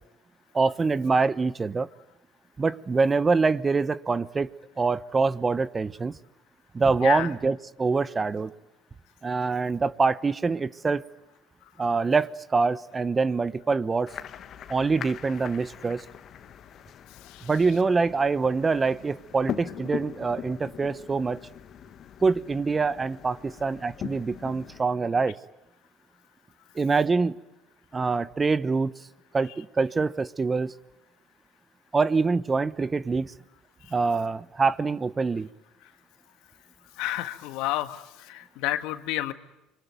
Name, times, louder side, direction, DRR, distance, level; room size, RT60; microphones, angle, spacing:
voice 1, 0.5-1.9 2.6-4.5 4.8-6.1 6.7-8.5 9.2-11.0 11.8-14.1 14.7-16.0 17.4-21.4 22.2-25.4 26.7-27.4 27.9-28.9 29.3-30.7 31.9-33.3 33.9-35.5, right 4 dB, 25° right, 1.0 m, -25 dB
sound 1, 14.1-24.8, left 9 dB, 50° left, 1.6 m, -41 dB
voice 2, 37.0-39.3, left 14 dB, 70° left, 1.8 m, -30 dB
26.0 x 24.5 x 9.3 m
hypercardioid pair, 80°, 0 cm